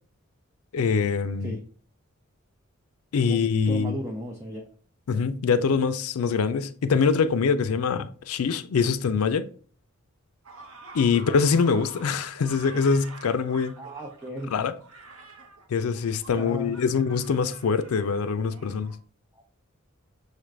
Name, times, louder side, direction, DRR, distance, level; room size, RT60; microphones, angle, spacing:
voice 1, 0.7-1.6 3.1-3.9 5.1-9.5 10.9-13.8 14.5-14.7 15.7-18.9, left 5 dB, 80° left, 0.4 m, -24 dB
voice 2, 3.2-4.6 5.1-5.3 11.1-11.3 13.8-14.5 16.3-16.7 19.3-19.4, equal, 15° right, 0.5 m, -36 dB
sound 1, 10.4-19.0, right 3 dB, 70° right, 0.9 m, -47 dB
6.6 x 2.5 x 3.1 m
head